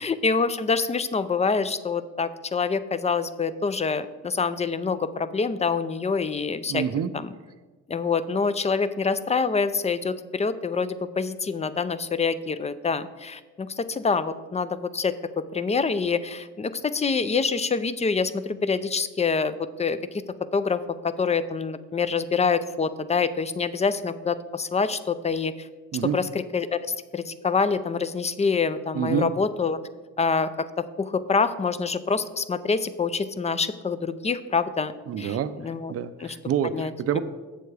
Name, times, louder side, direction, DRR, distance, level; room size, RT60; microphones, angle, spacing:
voice 1, 0.0-6.8 7.1-7.3 7.9-15.1 15.5-19.5 19.8-20.2 20.5-25.7 26.1-29.8 30.2-34.9 35.2-35.9 36.2-36.4 36.7-36.9, left 5 dB, 20° left, 14 dB, 0.4 m, -26 dB
voice 2, 6.7-7.1 25.9-26.2 28.9-29.3 35.1-35.5 35.9-37.2, right 9 dB, 50° right, 11 dB, 0.5 m, -27 dB
7.8 x 6.8 x 4.9 m, 1.3 s
cardioid pair, 90°, 30 cm